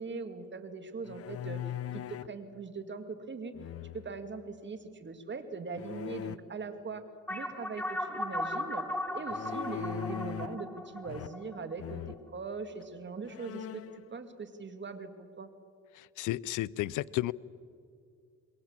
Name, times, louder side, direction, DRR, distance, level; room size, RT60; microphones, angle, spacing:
voice 1, 0.0-1.6 1.9-3.5 3.9-7.0 7.3-8.9 9.1-15.5, right 4 dB, 40° right, 8 dB, 2.4 m, -41 dB
sound 1, 1.0-2.4 3.5-4.3 5.8-6.4 9.3-10.7 11.0-11.5 11.8-12.2 12.8-12.9 13.2-14.0, left 10 dB, 50° left, 0.7 m, -40 dB
sound 2, 7.3-12.1, left 1 dB, 5° left, 3.6 m, -37 dB
voice 2, 15.9-17.3, left 16 dB, 85° left, 22 dB, 0.6 m, -33 dB
27.5 x 22.0 x 7.5 m, 2.4 s
cardioid pair, 90°, 30 cm